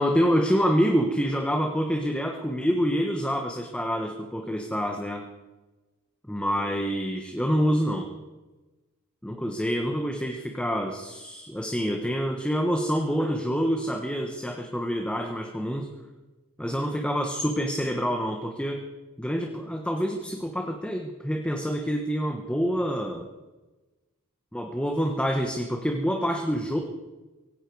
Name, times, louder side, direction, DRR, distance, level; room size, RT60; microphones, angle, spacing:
voice 1, 0.0-5.3 6.2-8.1 9.2-15.9 16.6-18.8 19.2-23.3 24.5-26.8, equal, 5° left, 3 dB, 1.2 m, -27 dB
18.0 x 16.0 x 4.8 m, 1.2 s
head